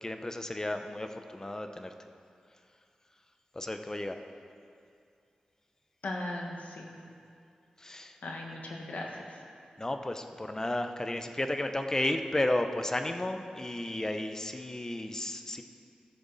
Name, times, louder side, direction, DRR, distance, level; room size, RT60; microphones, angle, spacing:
voice 1, 0.0-1.9 3.5-4.2 7.8-8.2 9.8-15.6, left 1 dB, 20° left, 7 dB, 0.7 m, -33 dB
voice 2, 6.0-7.0 8.2-9.4, left 1 dB, 80° left, 0 dB, 1.5 m, -38 dB
15.0 x 6.8 x 4.1 m, 2.4 s
wide cardioid pair, 80°, 3 cm